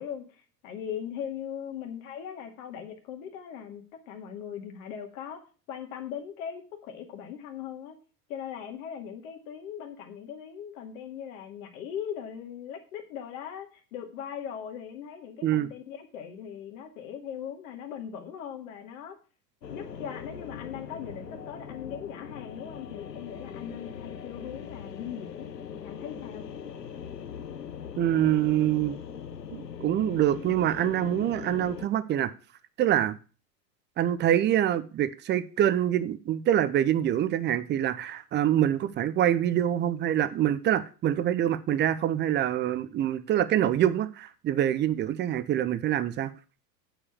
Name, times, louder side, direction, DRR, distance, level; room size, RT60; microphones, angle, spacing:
voice 1, 0.0-8.0 8.3-19.2 19.7-25.5 25.8-26.4, left 8 dB, 55° left, 2.1 m, -39 dB
sound 1, 19.6-31.9, left 7 dB, 85° left, 1.1 m, -41 dB
voice 2, 28.0-29.0 29.5-32.3 32.8-33.2 34.0-46.3, right 11 dB, 20° right, 0.6 m, -25 dB
8.9 x 4.8 x 6.9 m
figure-of-eight pair, 85°, 49 cm